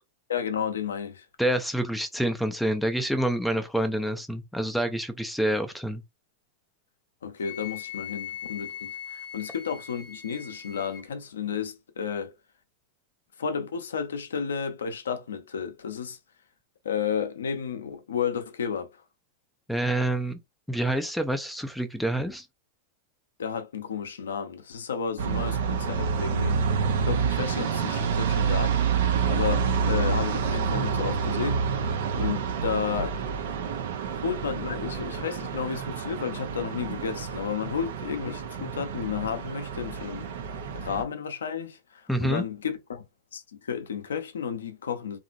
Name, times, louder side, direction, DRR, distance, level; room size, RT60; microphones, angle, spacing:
voice 1, 0.3-1.3 7.2-12.3 13.4-16.2 16.8-18.9 23.4-26.6 27.0-28.8 29.3-31.6 32.1-33.4 34.1-40.3 40.7-43.0 43.3-45.2, left 7 dB, 85° left, 0.6 m, -32 dB
voice 2, 1.4-6.0 19.7-20.4 20.7-22.5 42.1-42.4, right 1 dB, ahead, 0.4 m, -27 dB
Wind instrument woodwind instrument, 7.4-11.1, left 9 dB, 40° left, 0.8 m, -40 dB
sound 1, 25.2-41.0, right 6 dB, 70° right, 0.6 m, -28 dB
2.9 x 2.5 x 2.5 m
hypercardioid pair, 110°, 0 cm